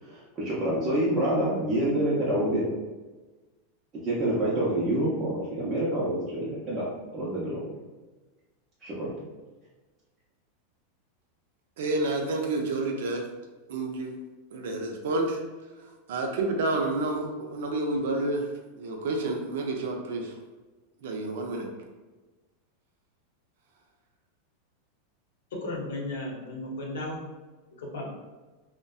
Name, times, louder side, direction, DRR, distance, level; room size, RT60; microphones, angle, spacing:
voice 1, 0.0-2.7 4.0-6.9 7.1-7.6 8.8-9.1, right 1 dB, 30° right, -8 dB, 0.6 m, -27 dB
voice 2, 11.8-13.3 13.7-14.2 14.5-15.4 16.1-18.5 18.8-20.3 21.0-21.7, right 2 dB, 75° right, 2 dB, 0.4 m, -29 dB
voice 3, 25.5-27.2 27.8-28.1, left 2 dB, 85° left, -2 dB, 0.7 m, -34 dB
2.6 x 2.1 x 2.3 m, 1.2 s
supercardioid pair, 135°, 0 cm